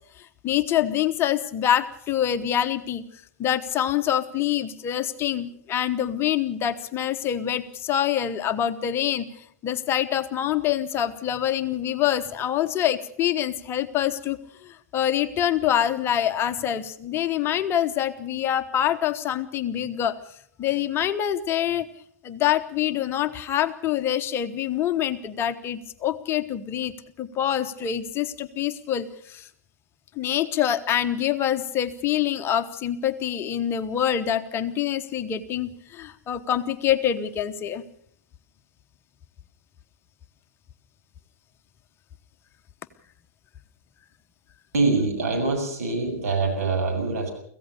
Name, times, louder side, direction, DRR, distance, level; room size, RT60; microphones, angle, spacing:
voice 1, 0.4-3.0 3.4-9.3 9.6-20.1 20.6-21.9 22.2-26.9 27.2-29.5 30.2-37.8, left 10 dB, 25° left, 9 dB, 1.0 m, -25 dB
voice 2, 44.7-47.3, right 3 dB, 65° right, 3 dB, 7.4 m, -24 dB
25.0 x 15.5 x 6.6 m, 0.65 s
figure-of-eight pair, 100°, 9 cm